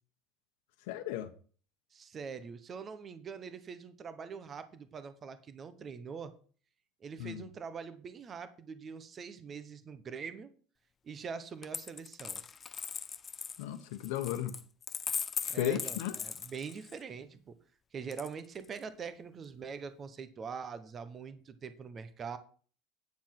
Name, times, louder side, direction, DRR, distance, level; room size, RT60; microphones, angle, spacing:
voice 1, 0.9-1.3 7.2-7.5 13.6-14.6 15.4-16.1, left 12 dB, 80° left, 1.1 m, -35 dB
voice 2, 1.9-6.3 7.0-10.5 11.0-12.4 15.5-17.6 17.9-22.4, right 6 dB, 20° right, 0.8 m, -43 dB
Coin (dropping), 11.6-17.0 18.1-18.8, left 6 dB, 20° left, 0.4 m, -39 dB
9.5 x 7.0 x 5.9 m
cardioid pair, 170°, 0 cm